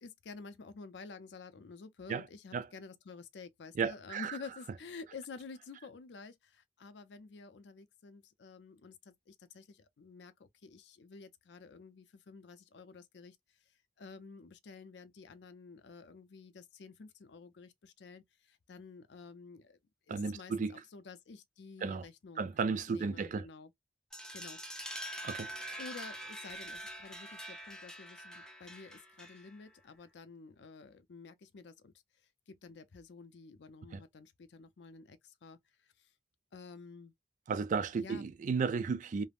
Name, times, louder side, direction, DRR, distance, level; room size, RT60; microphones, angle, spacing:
voice 1, 0.0-13.4 14.0-19.8 20.1-22.5 22.9-23.7 24.3-24.6 25.8-31.9 32.5-35.6 36.0-36.1 36.5-37.1 38.0-38.2, left 4 dB, 70° left, 0.5 m, -50 dB
voice 2, 3.8-4.4 20.1-20.8 21.8-22.0 22.4-23.5 25.2-25.8 33.9-34.0 37.5-39.2, right 5 dB, 45° right, 0.3 m, -34 dB
sound 1, 24.1-29.7, equal, 5° left, 0.6 m, -45 dB
3.4 x 2.0 x 2.4 m
head